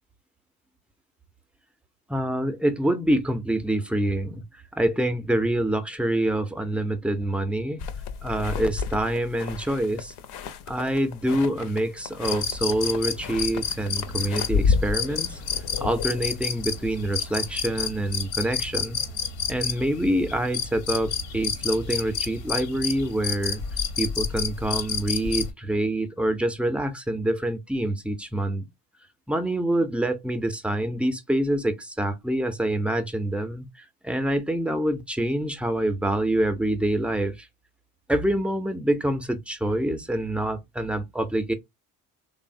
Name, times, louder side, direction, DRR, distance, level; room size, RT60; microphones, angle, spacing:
voice 1, 2.1-4.4 4.7-7.8 8.2-10.1 10.7-15.4 15.8-19.0 19.5-23.6 24.0-28.7 29.3-37.5 38.1-41.5, right 1 dB, 5° right, 0.4 m, -26 dB
sound 1, 7.8-17.6, left 5 dB, 60° left, 0.6 m, -32 dB
sound 2, 12.2-25.5, left 7 dB, 85° left, 0.9 m, -30 dB
3.1 x 2.1 x 2.5 m
supercardioid pair, 75°, 44 cm